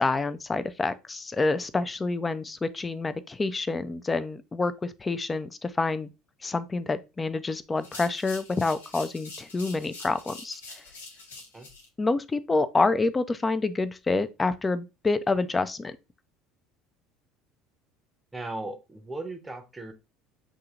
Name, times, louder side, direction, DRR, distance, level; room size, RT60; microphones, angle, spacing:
voice 1, 0.0-6.1 6.4-10.6 12.0-16.0, left 3 dB, 20° left, 0.4 m, -27 dB
sound 1, 7.8-11.9, left 3 dB, 80° left, 0.8 m, -45 dB
voice 2, 18.3-19.9, right 2 dB, 15° right, 0.7 m, -37 dB
7.2 x 2.8 x 2.4 m
figure-of-eight pair, 65°, 0 cm